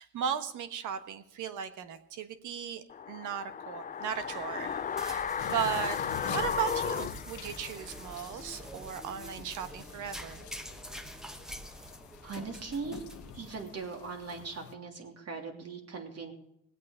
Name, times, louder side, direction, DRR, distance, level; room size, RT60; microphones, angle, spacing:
voice 1, 0.0-10.5, right 9 dB, 85° right, 10 dB, 1.4 m, -37 dB
sound 1, 2.9-8.0 8.3-8.4, left 7 dB, 30° left, 0.4 m, -35 dB
sound 2, 4.0-14.0, equal, ahead, 1.2 m, -47 dB
sound 3, 5.4-14.7, left 10 dB, 75° left, 1.0 m, -45 dB
voice 2, 12.2-13.0 13.3-16.3, right 4 dB, 55° right, 3 dB, 3.0 m, -40 dB
19.5 x 8.4 x 5.0 m, 0.79 s
cardioid pair, 90°, 30 cm